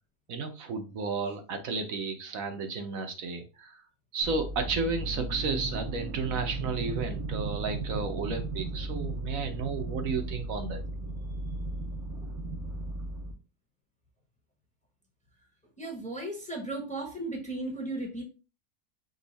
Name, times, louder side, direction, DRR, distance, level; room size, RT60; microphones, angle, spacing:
voice 1, 0.3-3.8 4.1-10.8, right 4 dB, 65° right, 6 dB, 1.1 m, -33 dB
sound 1, 4.2-13.3, right 2 dB, 85° right, 1.6 m, -35 dB
voice 2, 15.8-18.2, right 2 dB, 5° left, 1 dB, 0.9 m, -35 dB
5.3 x 2.4 x 4.0 m, 0.32 s
omnidirectional pair, 1.6 m